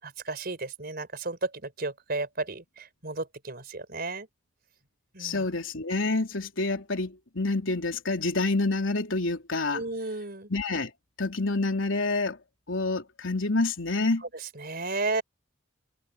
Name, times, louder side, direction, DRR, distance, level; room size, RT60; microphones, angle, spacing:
voice 1, 0.0-4.3 5.1-5.4 9.7-10.5 14.5-15.2, right 3 dB, 55° right, 4.6 m, -33 dB
voice 2, 5.2-9.8 10.5-10.9 11.2-12.4 12.7-14.2, left 2 dB, 90° left, 3.3 m, -28 dB
head